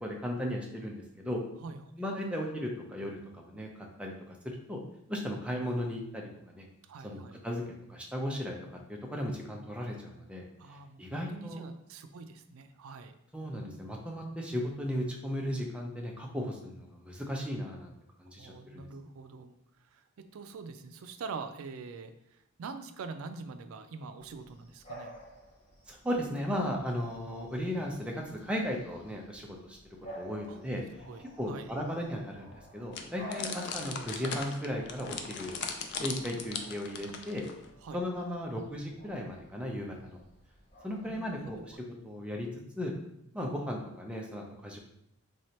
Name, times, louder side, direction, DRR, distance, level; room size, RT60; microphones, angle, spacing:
voice 1, 0.0-1.4 2.0-3.7 4.0-4.8 5.1-6.6 7.0-7.6 7.9-8.6 8.9-10.4 11.0-11.6 13.3-17.9 18.2-18.9 25.9-29.8 30.2-30.8 31.4-35.6 36.0-37.4 37.9-40.2 40.8-41.7 42.0-42.5 42.8-42.9 43.3-44.8, equal, 5° right, -1 dB, 0.5 m, -36 dB
voice 2, 1.6-1.9 6.8-7.4 10.6-13.1 18.4-19.5 19.8-25.1 30.5-30.6 31.1-31.7 37.8-38.0 41.0-41.5, right 4 dB, 80° right, 9 dB, 0.4 m, -44 dB
Bark / Bird vocalization bird call bird song, 24.2-41.7, equal, 30° left, 1.3 m, -52 dB
sound 1, 32.9-37.7, left 5 dB, 55° left, 0.4 m, -39 dB
3.7 x 3.2 x 2.8 m, 0.77 s
head